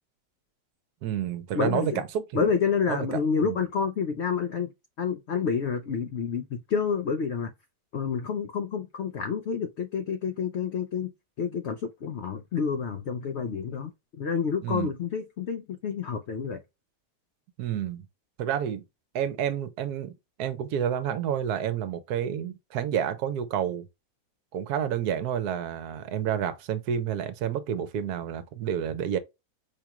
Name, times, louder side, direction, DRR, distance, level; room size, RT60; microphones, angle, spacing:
voice 1, 1.0-2.5 2.9-3.6 14.6-14.9 17.6-18.1 18.4-18.8 19.1-20.1 20.4-23.9 24.5-29.2, right 9 dB, 70° right, 1.1 m, -29 dB
voice 2, 1.5-2.0 2.3-4.7 5.0-7.5 7.9-11.1 11.4-13.9 14.2-16.6, left 6 dB, 90° left, 0.5 m, -29 dB
5.0 x 2.9 x 2.3 m
omnidirectional pair, 1.8 m